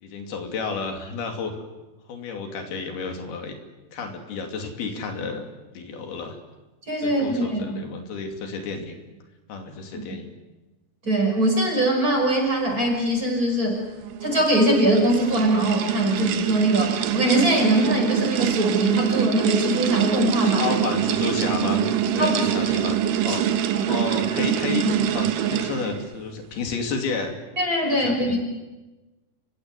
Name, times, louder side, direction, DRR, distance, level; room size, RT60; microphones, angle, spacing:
voice 1, 0.0-1.5 2.1-3.6 3.9-5.4 5.7-6.4 7.0-9.0 9.5-10.3 20.4-21.9 22.1-23.0 23.2-24.8 25.1-27.3 27.8-28.4, left 4 dB, 70° left, 4 dB, 4.6 m, -31 dB
voice 2, 6.9-7.8 11.0-13.8 14.2-20.7 22.2-22.5 23.3-23.4 23.7-23.8 24.7-25.0 27.6-28.4, right 1 dB, 20° right, 1 dB, 5.8 m, -22 dB
sound 1, 13.9-26.1, right 10 dB, 65° right, 2.4 m, -25 dB
30.0 x 16.0 x 9.8 m, 1.1 s
omnidirectional pair, 4.7 m